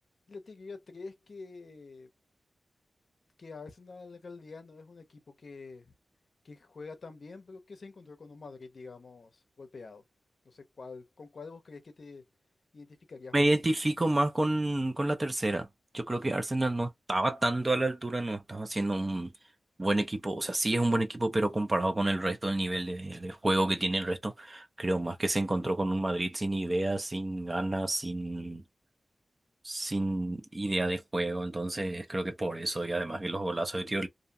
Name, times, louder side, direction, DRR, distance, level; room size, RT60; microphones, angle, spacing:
voice 1, 0.3-2.1 3.4-5.9 6.4-10.0 10.4-12.2 12.7-13.5, left 4 dB, 60° left, 0.6 m, -47 dB
voice 2, 13.3-15.7 15.9-19.3 19.8-28.6 29.6-34.1, right 2 dB, 25° right, 0.4 m, -29 dB
2.5 x 2.2 x 2.6 m
wide cardioid pair, 105°, 0 cm